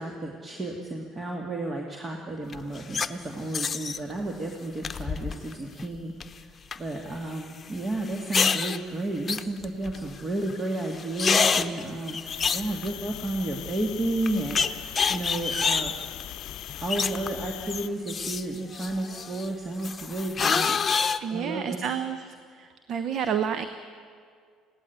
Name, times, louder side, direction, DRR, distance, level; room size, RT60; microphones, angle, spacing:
voice 1, 0.0-16.0 16.8-20.8 21.3-21.9, right 2 dB, 30° right, 1 dB, 2.3 m, -32 dB
sound 1, 2.5-3.1 3.5-4.0 4.8-5.5 5.8-6.2 6.7-6.8 8.1-8.8 9.3-10.2 10.5-10.6 10.9-13.3 13.7-13.8 14.3-17.5 17.7-19.5 19.8-21.2, left 5 dB, 35° left, 1.0 m, -27 dB
sound 2, 12.3-17.9, left 14 dB, 65° left, 0.5 m, -40 dB
voice 2, 21.2-23.7, right 7 dB, 55° right, 10 dB, 1.0 m, -30 dB
21.0 x 16.5 x 9.6 m, 2.1 s
hypercardioid pair, 60°, 0 cm